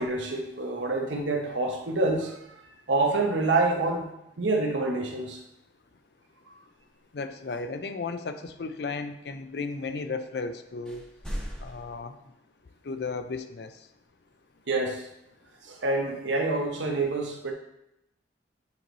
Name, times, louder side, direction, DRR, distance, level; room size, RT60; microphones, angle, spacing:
voice 1, 0.0-2.6 2.9-4.1 4.4-5.4 14.7-15.1 15.6-17.5, right 2 dB, 85° right, 2 dB, 1.0 m, -27 dB
voice 2, 7.1-11.0 11.6-12.1 12.8-13.7, left 4 dB, 60° left, 9 dB, 0.5 m, -34 dB
sound 1, 10.9-12.0, equal, 5° left, 0.9 m, -37 dB
8.5 x 3.1 x 4.0 m, 0.84 s
head